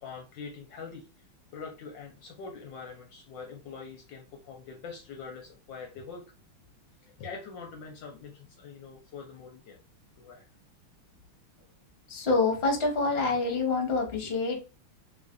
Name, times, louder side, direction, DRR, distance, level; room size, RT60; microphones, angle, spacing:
voice 1, 0.0-1.1 1.5-6.2 7.0-9.8 10.1-10.5, left 5 dB, 70° left, 1 dB, 1.2 m, -44 dB
voice 2, 12.1-14.6, left 3 dB, 40° left, 1 dB, 1.0 m, -26 dB
3.5 x 3.2 x 2.4 m, 0.34 s
omnidirectional pair, 2.3 m